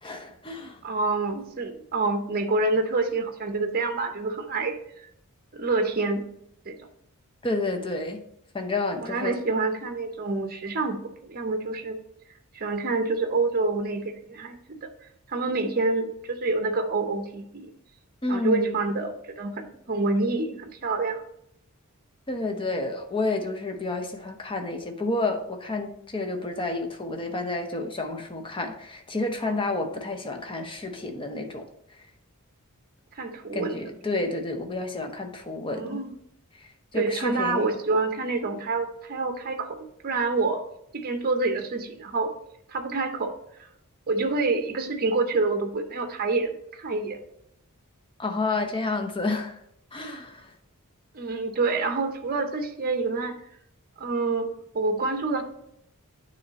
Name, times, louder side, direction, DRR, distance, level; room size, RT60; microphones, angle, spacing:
voice 1, 0.0-0.8 7.4-8.2 8.5-9.4 18.2-18.8 22.3-31.7 33.5-36.0 36.6-37.7 48.2-49.6 49.9-50.5, left 2 dB, 25° left, 5 dB, 0.7 m, -30 dB
voice 2, 0.8-4.7 5.5-6.2 6.7-6.8 9.0-12.0 12.5-14.9 15.3-17.7 18.3-21.2 29.4-29.6 33.1-33.8 35.7-36.1 36.9-40.6 40.9-42.3 42.7-43.3 43.6-43.7 44.1-47.2 51.1-53.4 54.0-54.5 54.7-55.4, right 3 dB, 40° right, 6 dB, 0.7 m, -27 dB
9.3 x 3.2 x 4.0 m, 0.76 s
head